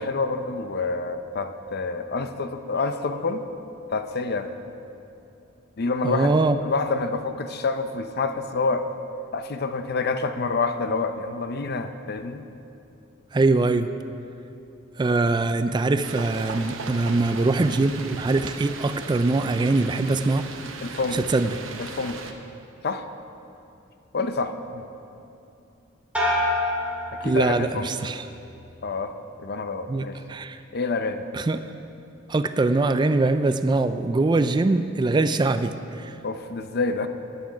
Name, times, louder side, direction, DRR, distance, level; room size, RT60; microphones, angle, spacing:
voice 1, 0.0-3.4 3.9-4.5 5.8-6.3 6.6-8.9 9.3-12.5 20.8-21.2 21.8-22.2 22.8-23.1 24.1-24.8 27.2-27.9 28.8-29.1 29.4-30.2 30.7-31.2 36.2-37.1, left 3 dB, 55° left, 9 dB, 0.6 m, -27 dB
voice 2, 6.0-6.6 13.3-13.9 15.0-20.5 21.1-21.6 27.2-28.2 29.9-30.6 31.3-31.6 32.3-36.2, right 3 dB, 25° right, 10 dB, 0.3 m, -22 dB
sound 1, 16.0-22.3, right 4 dB, 85° right, 0.9 m, -37 dB
sound 2, 26.1-27.9 28.3-28.9, left 1 dB, 5° right, 2.2 m, -27 dB
13.0 x 9.7 x 5.1 m, 2.8 s
head